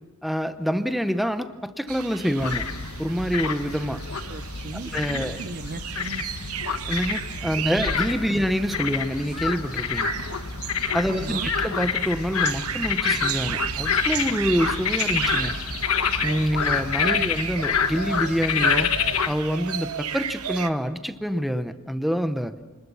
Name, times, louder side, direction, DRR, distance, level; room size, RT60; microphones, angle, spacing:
voice 1, 0.2-2.7 3.0-4.0 4.9-5.4 6.9-10.2 10.9-15.6 16.2-19.0 19.3-22.6, equal, ahead, 10 dB, 0.8 m, -26 dB
sound 1, 1.9-20.7, right 8 dB, 90° right, 1.0 m, -34 dB
sound 2, 2.4-19.3, left 6 dB, 75° left, 1.3 m, -27 dB
voice 2, 4.3-6.2 7.4-7.5 7.8-7.9 8.3-8.5 11.1-11.5 17.1-17.3, right 2 dB, 45° right, 13 dB, 0.7 m, -37 dB
25.5 x 20.0 x 7.0 m, 1.3 s
head